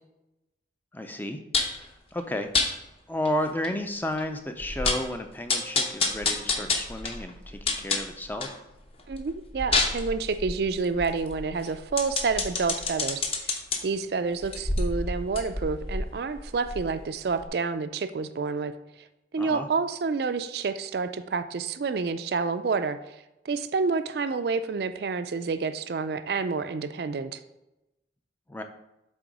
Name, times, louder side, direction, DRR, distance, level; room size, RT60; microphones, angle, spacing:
voice 1, 0.9-1.4 1.7-2.5 3.1-8.5 19.4-19.7 28.5-28.6, left 1 dB, 10° left, 6 dB, 0.4 m, -32 dB
sound 1, 1.5-1.8 2.5-2.7 3.2-3.3 3.6-3.7 4.2-4.3 4.6-5.1 5.5-8.6 9.0-13.8 14.4-17.1 17.4-17.5, left 3 dB, 30° left, 0.7 m, -28 dB
voice 2, 9.1-13.6 13.8-18.7 19.3-23.0 23.4-27.4, right 4 dB, 55° right, 10 dB, 0.4 m, -29 dB
7.8 x 3.6 x 4.8 m, 0.94 s
head